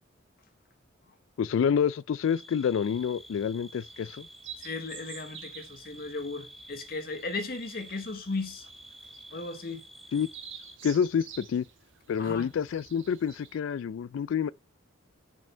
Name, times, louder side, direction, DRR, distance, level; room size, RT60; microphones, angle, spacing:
voice 1, 1.4-4.3 10.1-10.3 10.8-11.6 12.1-14.5, left 7 dB, 75° left, 0.3 m, -28 dB
sound 1, 2.2-10.8, right 1 dB, ahead, 0.6 m, -50 dB
sound 2, 2.8-13.6, right 8 dB, 75° right, 1.3 m, -50 dB
voice 2, 4.6-8.6 9.3-9.8 12.2-12.5, left 3 dB, 50° left, 1.2 m, -36 dB
5.5 x 5.3 x 5.4 m
head